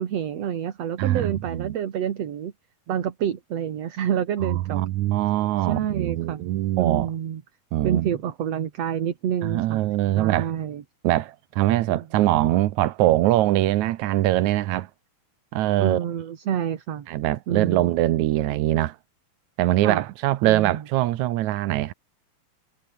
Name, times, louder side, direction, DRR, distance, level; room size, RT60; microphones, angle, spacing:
voice 1, 0.0-2.5 2.9-4.9 5.6-6.5 6.8-7.4 7.8-10.8 11.9-12.0 15.8-17.1 17.5-17.9 19.8-20.0 20.4-20.8, right 9 dB, 50° right, 2.5 m, -28 dB
voice 2, 1.0-1.7 4.4-7.1 7.7-8.1 9.4-10.5 11.0-14.9 15.5-16.0 17.1-19.0 19.6-21.9, right 15 dB, 75° right, 1.8 m, -22 dB
omnidirectional pair, 4.3 m